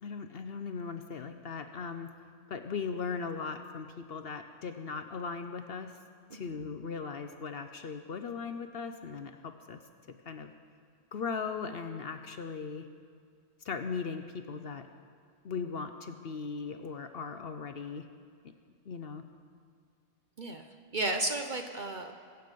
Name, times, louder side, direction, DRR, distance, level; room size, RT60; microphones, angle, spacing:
voice 1, 0.0-2.1 2.5-5.9 6.3-9.8 10.3-10.5 11.1-12.9 13.6-14.9 15.4-18.1 18.9-19.2, left 5 dB, 55° left, 7 dB, 0.8 m, -38 dB
voice 2, 20.9-22.1, right 2 dB, 45° right, 5 dB, 0.7 m, -33 dB
23.0 x 8.1 x 5.2 m, 2.1 s
omnidirectional pair, 1.4 m